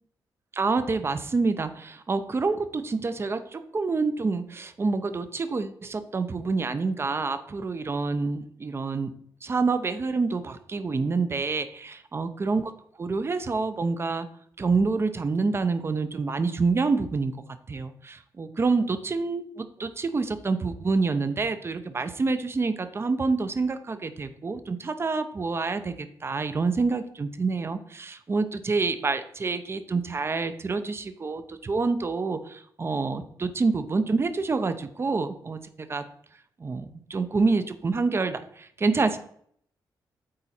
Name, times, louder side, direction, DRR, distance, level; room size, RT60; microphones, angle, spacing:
voice 1, 0.5-9.1 9.4-12.7 13.0-14.3 14.6-17.3 17.7-36.1 36.6-39.2, right 4 dB, 30° right, 11 dB, 0.7 m, -27 dB
8.7 x 4.0 x 4.3 m, 0.64 s
cardioid pair, 80°, 8 cm